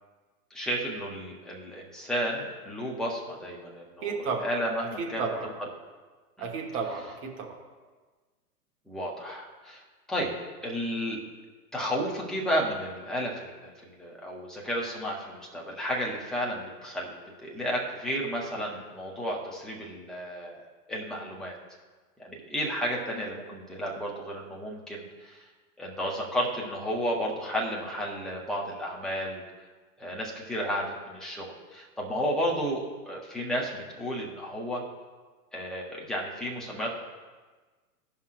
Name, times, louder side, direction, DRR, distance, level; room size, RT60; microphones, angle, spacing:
voice 1, 0.5-5.5 6.4-6.5 8.9-9.8 10.1-10.3 10.6-11.2 11.7-17.1 17.4-21.6 22.2-25.4 25.8-29.4 30.0-34.8 35.5-36.9, equal, ahead, -3 dB, 0.5 m, -32 dB
voice 2, 4.0-4.4 5.0-5.5 6.4-7.6, right 5 dB, 25° right, 1 dB, 1.2 m, -32 dB
16.5 x 5.6 x 2.4 m, 1.3 s
hypercardioid pair, 135°, 48 cm